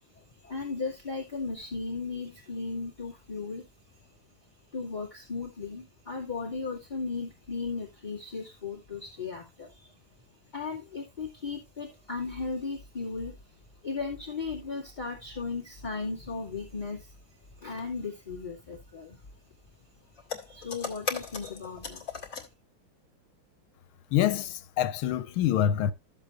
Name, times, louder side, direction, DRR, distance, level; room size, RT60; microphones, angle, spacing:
voice 1, 0.1-3.7 4.7-10.0 10.5-19.2 20.1-22.1, left 4 dB, 20° left, 2.2 m, -36 dB
sound 1, 20.2-22.5, left 5 dB, 40° left, 2.4 m, -37 dB
voice 2, 24.1-25.9, left 11 dB, 90° left, 1.6 m, -26 dB
13.5 x 7.4 x 2.5 m
omnidirectional pair, 2.2 m